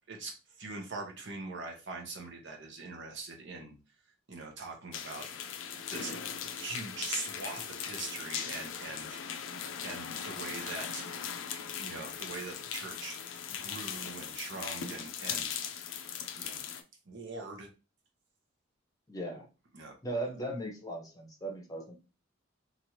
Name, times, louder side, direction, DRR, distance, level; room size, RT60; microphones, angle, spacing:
voice 1, 0.1-3.7 4.3-5.3 5.9-6.2 6.5-9.2 9.8-11.1 11.8-13.2 13.6-15.5 16.4-16.6 17.1-17.7 19.7-20.0, right 3 dB, 65° right, 2 dB, 0.8 m, -42 dB
sound 1, 4.9-16.8, left 7 dB, 75° left, 0.4 m, -39 dB
voice 2, 19.1-19.5 20.0-22.0, right 1 dB, 20° left, 1 dB, 0.8 m, -37 dB
3.0 x 2.5 x 2.8 m, 0.30 s
head